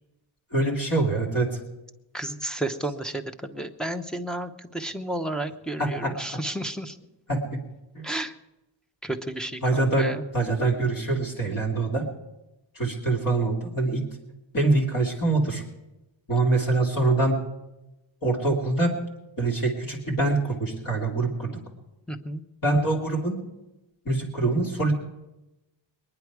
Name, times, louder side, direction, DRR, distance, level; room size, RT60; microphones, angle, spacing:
voice 1, 0.5-1.6 5.8-6.1 7.3-7.4 7.9-8.0 9.6-10.1 10.3-12.0 12.7-14.1 14.5-15.6 16.3-17.4 18.2-18.9 19.4-21.5 22.6-23.4 24.0-24.9, right 2 dB, 45° left, -2 dB, 2.7 m, -24 dB
voice 2, 2.1-7.0 8.0-8.3 9.0-10.2 22.1-22.4, right 1 dB, ahead, 7 dB, 0.7 m, -32 dB
22.0 x 10.5 x 4.7 m, 0.97 s
wide cardioid pair, 170°, 46 cm